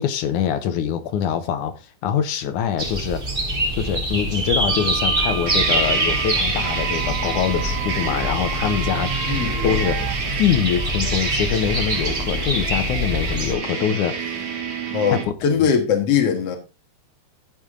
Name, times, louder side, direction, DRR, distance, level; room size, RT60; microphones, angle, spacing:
voice 1, 0.0-3.2 3.8-9.1 9.6-14.5 15.1-15.7, left 8 dB, 75° left, 1.9 m, -24 dB
sound 1, 2.8-13.5, right 1 dB, 20° right, 1.6 m, -25 dB
sound 2, 4.6-10.2, right 11 dB, 85° right, 2.6 m, -32 dB
sound 3, 5.5-15.2, right 4 dB, 50° right, 2.9 m, -29 dB
voice 2, 14.9-16.6, left 7 dB, 55° left, 1.9 m, -20 dB
14.0 x 7.2 x 3.7 m
omnidirectional pair, 4.5 m